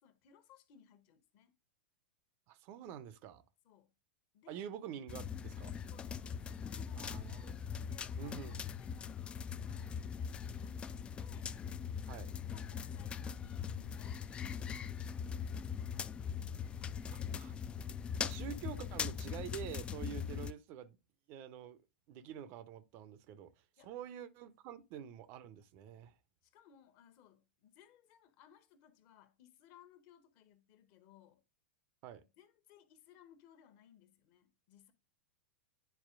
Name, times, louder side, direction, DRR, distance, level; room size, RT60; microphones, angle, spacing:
voice 1, 0.0-1.5 3.6-3.9 4.3-4.7 5.9-7.3 7.7-11.6 12.5-16.1 16.8-17.4 23.8-23.9 24.7-24.8 26.4-31.4 32.2-34.9, left 9 dB, 40° left, 1.1 m, -63 dB
voice 2, 2.5-3.4 4.5-5.7 7.0-7.5 8.2-8.7 12.1-12.3 17.1-17.5 18.2-21.0 21.3-21.8 22.1-26.1 32.0-32.2, right 9 dB, 40° right, 0.6 m, -47 dB
sound 1, 5.1-20.5, left 7 dB, 20° left, 0.3 m, -41 dB
10.5 x 4.3 x 2.5 m
figure-of-eight pair, 95°, 6 cm